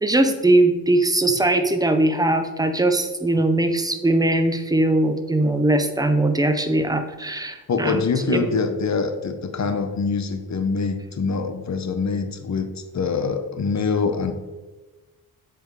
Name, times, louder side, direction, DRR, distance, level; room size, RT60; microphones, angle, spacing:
voice 1, 0.0-8.5, right 2 dB, 10° right, 7 dB, 0.8 m, -20 dB
voice 2, 7.7-12.7 12.9-14.3, left 5 dB, 45° left, 8 dB, 1.0 m, -24 dB
7.7 x 5.1 x 4.8 m, 1.2 s
cardioid pair, 105°, 39 cm